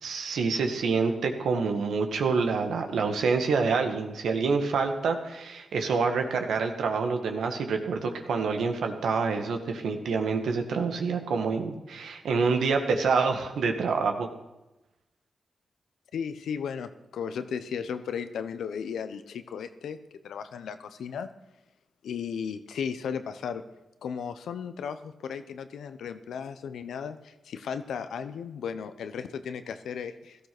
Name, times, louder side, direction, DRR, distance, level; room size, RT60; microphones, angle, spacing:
voice 1, 0.0-14.3, right 4 dB, 85° right, 5 dB, 2.0 m, -27 dB
voice 2, 16.1-20.0 20.2-21.3 22.0-23.6 24.0-30.5, left 7 dB, 85° left, 11 dB, 1.0 m, -35 dB
17.0 x 13.5 x 6.2 m, 1.0 s
cardioid pair, 60°, 0 cm